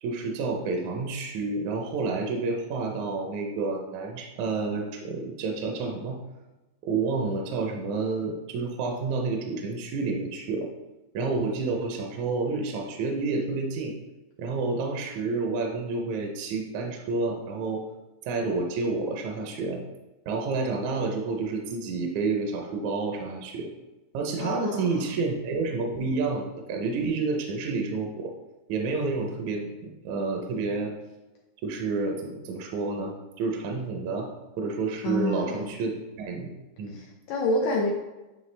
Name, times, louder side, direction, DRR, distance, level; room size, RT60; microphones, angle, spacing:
voice 1, 0.0-6.2 6.8-10.7 11.1-13.9 14.4-17.8 18.3-19.8 20.3-23.7 24.1-28.3 28.7-29.7 30.0-30.9 31.6-33.1 33.4-34.3 34.6-35.9 36.2-36.5 36.8-37.0, right 3 dB, 75° right, 2 dB, 1.8 m, -29 dB
voice 2, 24.4-25.0 35.0-35.7 36.9-37.9, left 1 dB, 85° left, -1 dB, 1.5 m, -28 dB
9.2 x 3.3 x 3.2 m, 1.1 s
omnidirectional pair, 3.9 m